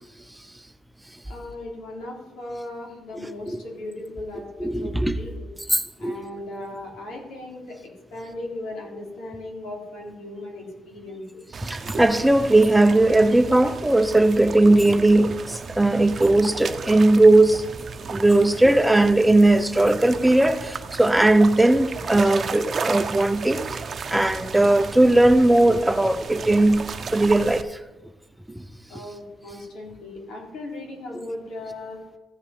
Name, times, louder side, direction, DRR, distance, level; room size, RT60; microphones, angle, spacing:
voice 1, 1.3-5.5 6.0-7.8 8.1-11.4 28.9-32.0, left 1 dB, 80° left, 3.7 m, -37 dB
voice 2, 3.2-3.6 4.6-5.1 5.7-6.2 11.6-17.6 18.0-23.8 24.1-26.8 27.1-27.7, right 2 dB, 10° right, 0.8 m, -18 dB
sound 1, 11.5-27.6, right 5 dB, 45° right, 0.8 m, -34 dB
15.0 x 5.7 x 5.0 m
cardioid pair, 90°, 0 cm